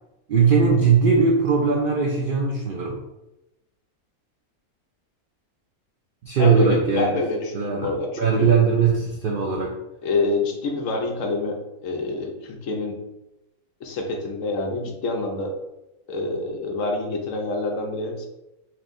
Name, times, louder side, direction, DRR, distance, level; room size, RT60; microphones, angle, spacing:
voice 1, 0.3-3.0 6.2-7.2 7.5-7.9 8.2-9.8, right 5 dB, 80° right, 0 dB, 0.4 m, -19 dB
voice 2, 6.4-8.5 10.0-11.6 11.8-13.0 13.8-15.5 16.1-18.3, left 2 dB, 65° left, 2 dB, 0.9 m, -27 dB
4.4 x 3.1 x 2.5 m, 0.94 s
omnidirectional pair, 1.5 m